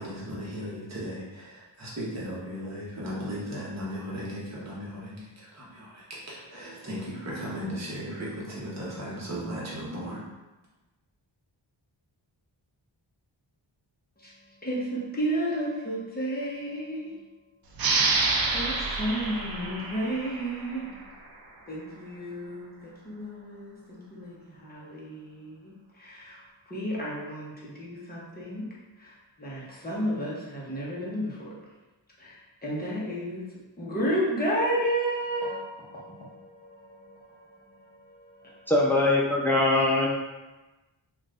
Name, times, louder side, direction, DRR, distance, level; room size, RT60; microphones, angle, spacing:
voice 1, 0.0-10.2, equal, 35° right, -6 dB, 1.0 m, -36 dB
voice 2, 14.6-17.2 18.5-21.0 21.7-26.4 26.7-28.7 29.0-29.1 29.4-31.5 32.2-33.4 33.8-38.6, right 1 dB, 20° left, -6 dB, 0.9 m, -32 dB
sound 1, 17.7-21.0, right 3 dB, 50° right, 0.5 m, -28 dB
voice 3, 38.7-40.1, left 2 dB, 5° left, -3 dB, 0.5 m, -22 dB
2.5 x 2.4 x 3.3 m, 1.1 s
wide cardioid pair, 70°, 46 cm